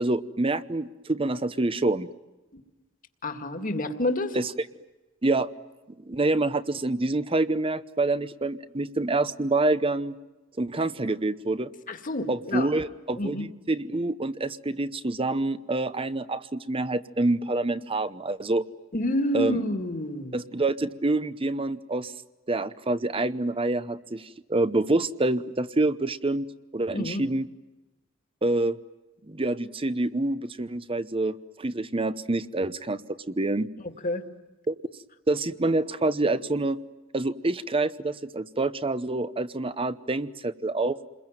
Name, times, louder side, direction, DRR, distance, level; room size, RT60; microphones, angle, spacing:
voice 1, 0.0-2.1 4.3-4.5 5.2-5.5 6.0-10.2 10.6-11.7 12.3-18.6 19.3-19.6 20.3-22.1 22.5-26.5 26.7-27.5 28.4-28.8 29.3-33.7 34.7-34.8 35.3-36.8 37.1-41.0, right 2 dB, 25° right, 14 dB, 0.8 m, -27 dB
voice 2, 3.2-4.4 11.9-12.7 13.2-13.5 18.9-20.4 26.9-27.2 34.0-34.2, left 1 dB, 40° left, 7 dB, 2.1 m, -28 dB
29.0 x 22.0 x 9.1 m, 1.1 s
head